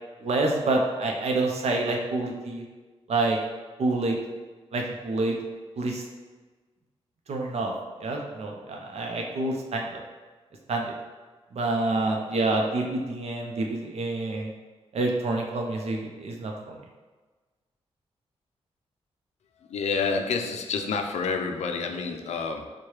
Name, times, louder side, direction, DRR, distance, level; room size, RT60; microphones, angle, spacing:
voice 1, 0.2-2.6 3.1-3.4 3.8-4.2 4.7-5.3 5.8-6.0 7.3-7.7 8.0-10.0 10.7-10.9 11.5-14.5 14.9-16.7, right 2 dB, 70° right, 1 dB, 0.6 m, -27 dB
voice 2, 19.7-22.7, left 5 dB, 85° left, 5 dB, 0.4 m, -28 dB
4.6 x 2.2 x 3.0 m, 1.3 s
wide cardioid pair, 100°, 11 cm